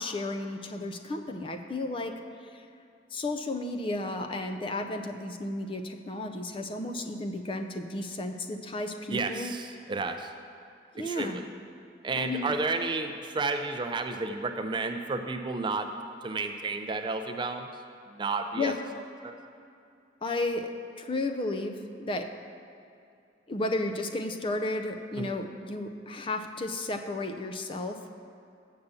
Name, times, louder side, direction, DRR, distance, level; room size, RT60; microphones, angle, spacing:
voice 1, 0.0-2.1 3.1-9.5 10.9-11.5 12.2-12.6 18.5-18.8 20.2-20.7 21.0-22.3 23.5-28.0, left 2 dB, 30° left, 5 dB, 0.5 m, -33 dB
voice 2, 9.1-10.3 11.0-11.4 12.0-15.9 16.2-17.7 18.1-18.7 19.2-19.4 25.2-25.3, right 3 dB, 25° right, 6 dB, 0.4 m, -31 dB
7.0 x 6.7 x 6.7 m, 2.6 s
head